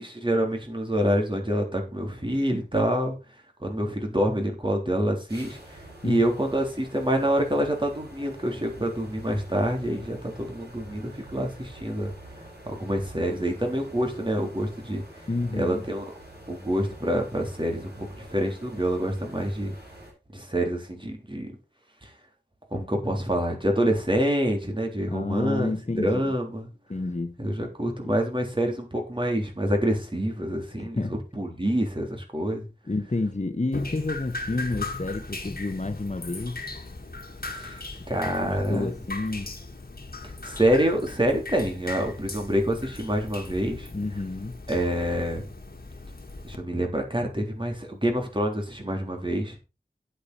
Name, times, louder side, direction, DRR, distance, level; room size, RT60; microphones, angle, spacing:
voice 1, 0.0-3.2 3.6-12.1 12.7-15.0 15.6-16.1 16.5-19.7 20.3-21.5 22.0-22.1 22.7-25.8 26.0-26.7 27.4-32.7 37.5-37.8 38.1-38.9 40.4-43.9 44.7-45.4 46.4-49.6, equal, 30° right, 3.6 m, -27 dB
sound 1, 5.3-20.1, right 1 dB, 70° right, 7.9 m, -46 dB
voice 2, 15.3-15.9 25.1-26.3 26.9-27.4 28.0-28.2 30.8-31.1 32.9-36.6 38.3-39.5 43.9-44.6, left 2 dB, 40° left, 1.1 m, -30 dB
Drip, 33.7-46.6, left 3 dB, 60° left, 1.7 m, -38 dB
9.9 x 8.5 x 4.3 m
wide cardioid pair, 50°, 17 cm